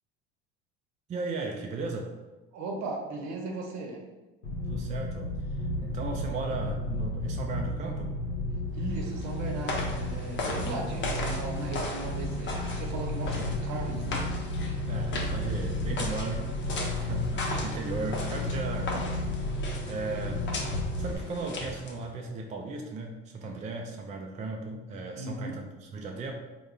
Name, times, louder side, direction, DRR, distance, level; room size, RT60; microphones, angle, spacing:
voice 1, 1.1-2.1 4.7-8.1 13.2-13.5 14.8-16.5 16.9-19.6 19.9-20.4 21.0-26.3, right 3 dB, 20° right, 2 dB, 0.4 m, -36 dB
voice 2, 2.5-4.1 8.7-14.3 20.1-20.3 25.1-25.6, right 3 dB, 60° right, 1 dB, 0.8 m, -37 dB
sound 1, 4.4-21.2, left 1 dB, 85° left, 0.8 m, -33 dB
sound 2, 8.8-22.1, left 2 dB, 35° left, 0.8 m, -37 dB
3.6 x 2.2 x 3.3 m, 1.2 s
hypercardioid pair, 70°, 33 cm